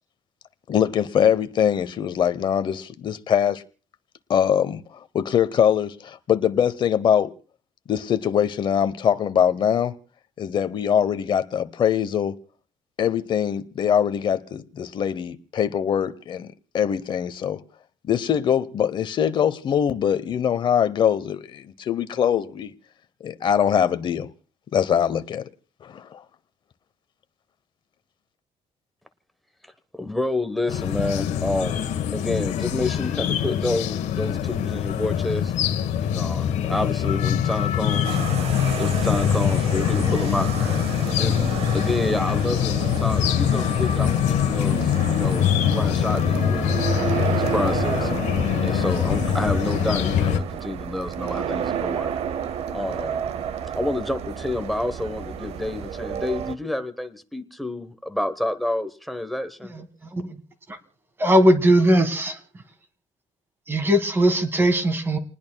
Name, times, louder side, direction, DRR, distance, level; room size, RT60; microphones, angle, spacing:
voice 1, 0.7-3.6 4.3-7.3 7.9-9.9 10.4-12.4 13.0-17.6 18.1-22.7 23.2-24.3 24.7-25.5 25.8-26.2, left 8 dB, 40° left, 0.9 m, -22 dB
voice 2, 29.9-35.5 36.0-38.2 38.8-46.8 47.0-48.1 48.6-52.1 52.7-53.2 53.7-59.7, left 1 dB, ahead, 1.0 m, -29 dB
sound 1, 30.7-50.4, left 9 dB, 90° left, 1.3 m, -23 dB
sound 2, 38.0-56.5, right 8 dB, 60° right, 0.8 m, -31 dB
voice 3, 61.2-62.4 63.7-65.2, right 1 dB, 20° right, 1.7 m, -19 dB
29.5 x 20.0 x 2.3 m
cardioid pair, 170°, 12 cm